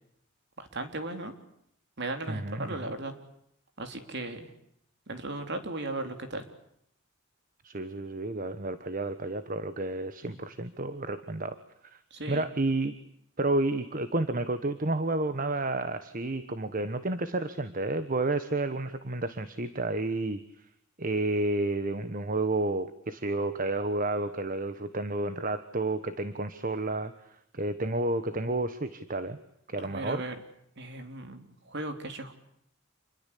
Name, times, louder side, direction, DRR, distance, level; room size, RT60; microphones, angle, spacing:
voice 1, 0.6-1.3 2.0-3.1 3.8-4.5 5.1-6.5 10.2-10.4 12.1-12.5 29.8-30.4 30.8-32.3, right 2 dB, 55° right, 7 dB, 3.8 m, -37 dB
voice 2, 2.3-2.7 7.6-11.6 11.9-12.0 12.3-12.9 13.4-20.4 21.0-27.1 27.5-29.4 29.7-30.2, right 2 dB, 40° right, 11 dB, 1.3 m, -30 dB
28.5 x 22.5 x 8.5 m, 0.74 s
head